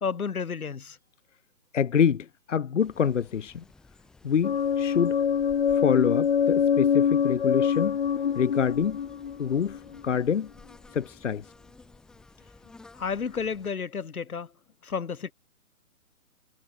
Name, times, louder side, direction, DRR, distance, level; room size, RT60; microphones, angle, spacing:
voice 1, 0.0-1.0 12.9-14.5 14.8-15.3, left 6 dB, 80° left, 3.3 m, -31 dB
voice 2, 1.7-3.6 4.2-5.2 5.7-8.0 8.3-9.0 9.4-10.5 10.9-11.5, left 7 dB, 55° left, 1.4 m, -26 dB
sound 1, 2.8-13.7, left 3 dB, ahead, 1.5 m, -54 dB
sound 2, 4.4-10.2, left 7 dB, 40° left, 1.1 m, -25 dB
hypercardioid pair, 170°, 43 cm